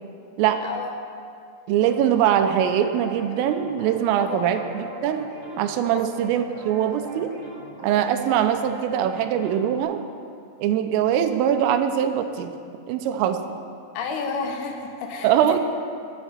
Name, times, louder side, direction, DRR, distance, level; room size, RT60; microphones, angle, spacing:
voice 1, 0.6-0.9 4.2-4.6 5.9-6.1 14.0-15.6, left 5 dB, 75° left, 3 dB, 3.7 m, -31 dB
voice 2, 1.7-5.2 5.6-7.3 7.8-10.0 10.6-12.5 12.9-13.4 15.2-15.6, right 9 dB, 80° right, 8 dB, 3.3 m, -22 dB
sound 1, 1.8-9.8, right 1 dB, 35° right, 3.2 m, -40 dB
20.5 x 8.4 x 7.2 m, 2.4 s
omnidirectional pair, 6.0 m